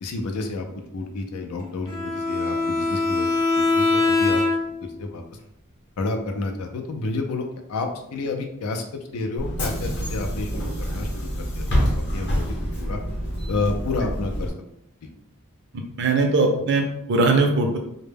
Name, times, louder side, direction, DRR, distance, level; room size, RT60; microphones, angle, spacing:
voice 1, 0.0-0.7 0.9-3.3 3.6-4.4 4.8-5.2 6.0-12.4 12.8-13.0 13.5-14.5 15.0-15.1, left 3 dB, 90° left, 4 dB, 0.4 m, -30 dB
Bowed string instrument, 1.9-4.9, left 3 dB, 15° left, 0.6 m, -22 dB
Bus / Engine, 9.4-14.5, equal, 50° left, 0.7 m, -27 dB
voice 2, 15.7-17.8, right 3 dB, 55° right, 3 dB, 0.5 m, -20 dB
2.1 x 2.0 x 3.3 m, 0.76 s
head